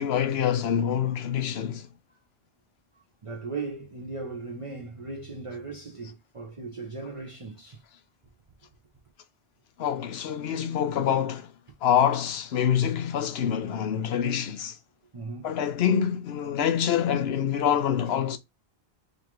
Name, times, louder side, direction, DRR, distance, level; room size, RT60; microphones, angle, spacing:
voice 1, 0.0-1.9 9.8-11.5 11.8-14.8 15.4-18.4, left 9 dB, 80° left, 0.9 m, -26 dB
voice 2, 3.2-7.8 15.1-15.6 18.3-18.4, right 3 dB, 35° right, 0.7 m, -37 dB
5.1 x 2.5 x 3.0 m
omnidirectional pair, 1.0 m